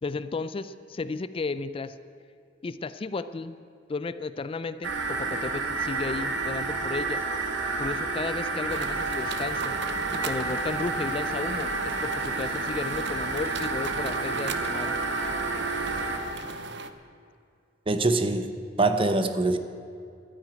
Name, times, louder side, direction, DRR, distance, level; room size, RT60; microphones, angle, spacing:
voice 1, 0.0-1.9 2.6-3.6 3.9-7.2 7.8-9.8 10.2-15.0, left 3 dB, 30° left, 13 dB, 0.4 m, -33 dB
sound 1, 4.8-16.2, right 3 dB, 85° right, 1.7 m, -30 dB
sound 2, 8.7-16.9, right 3 dB, 65° right, 0.8 m, -38 dB
voice 2, 17.9-18.5 18.8-19.6, right 2 dB, 30° right, 9 dB, 0.7 m, -23 dB
12.5 x 10.0 x 8.9 m, 2.4 s
head